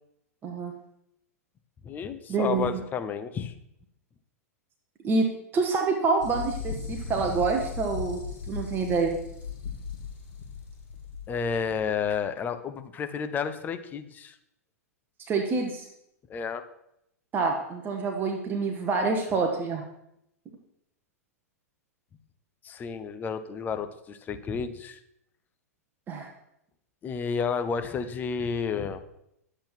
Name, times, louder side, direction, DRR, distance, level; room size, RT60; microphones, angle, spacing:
voice 1, 0.4-0.7 2.3-2.7 5.0-5.3 5.5-8.2 8.5-9.2 15.3-15.9 17.3-19.8 26.1-26.3, right 4 dB, 20° right, 2 dB, 1.0 m, -27 dB
voice 2, 1.8-3.6 11.3-14.4 16.3-16.6 22.6-25.0 27.0-29.0, left 6 dB, 20° left, 10 dB, 0.7 m, -31 dB
sound 1, 6.2-12.1, left 6 dB, 55° left, 2.2 m, -37 dB
10.5 x 7.6 x 4.4 m, 0.79 s
figure-of-eight pair, 100°, 9 cm